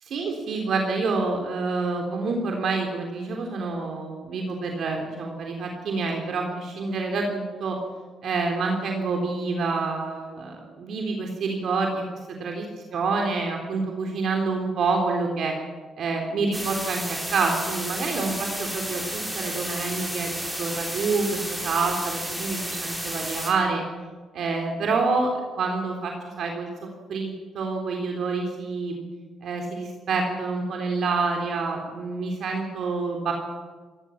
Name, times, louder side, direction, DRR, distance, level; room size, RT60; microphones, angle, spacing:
voice 1, 0.0-7.8 8.2-12.7 12.9-15.5 16.0-23.8 24.3-25.3 25.6-29.0 29.4-33.3, right 4 dB, 65° right, 2 dB, 3.6 m, -27 dB
sound 1, 16.5-23.5, right 1 dB, 10° right, 6.0 m, -32 dB
29.0 x 15.5 x 7.3 m, 1.4 s
cardioid pair, 90°, 0 cm